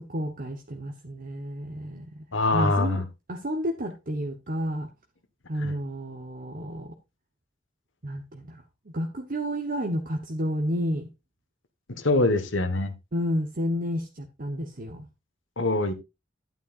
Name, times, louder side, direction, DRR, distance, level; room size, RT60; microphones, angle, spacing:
voice 1, 0.0-2.2 2.5-3.0 3.3-4.9 5.5-6.9 8.0-8.6 8.9-11.1 13.1-15.1, equal, 45° right, 4 dB, 1.1 m, -31 dB
voice 2, 2.3-3.0 5.6-5.7 11.9-12.9 15.6-15.9, left 2 dB, 75° left, 9 dB, 1.5 m, -24 dB
11.0 x 9.3 x 2.5 m, 0.24 s
head